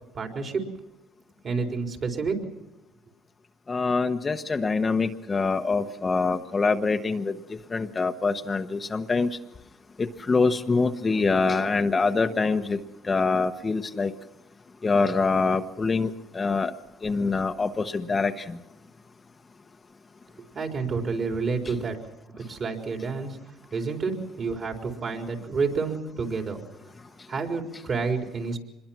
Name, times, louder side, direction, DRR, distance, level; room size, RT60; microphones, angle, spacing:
voice 1, 0.1-0.7 1.4-2.5 20.5-22.0 22.4-23.4 23.7-26.6 27.3-28.6, right 4 dB, 45° right, 3 dB, 4.2 m, -29 dB
voice 2, 3.7-7.3 7.7-9.3 10.0-12.8 13.1-14.1 14.8-16.7 17.0-18.6, left 4 dB, 25° left, 6 dB, 1.0 m, -25 dB
25.5 x 21.5 x 6.0 m, 0.92 s
cardioid pair, 100°, 0 cm